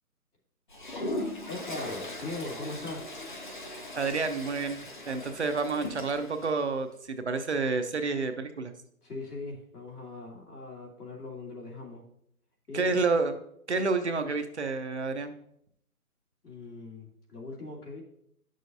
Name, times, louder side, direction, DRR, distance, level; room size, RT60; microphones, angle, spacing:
Toilet flush, 0.7-6.5, left 1 dB, 35° left, 0.7 m, -39 dB
voice 1, 1.5-3.2 9.0-12.0 12.7-13.0 16.4-18.0, left 2 dB, 80° left, -2 dB, 2.8 m, -40 dB
voice 2, 3.9-4.8 5.1-8.7 12.7-13.4 13.7-15.3, right 4 dB, 50° right, 7 dB, 0.7 m, -29 dB
9.8 x 6.4 x 2.7 m, 0.71 s
hypercardioid pair, 165°, 46 cm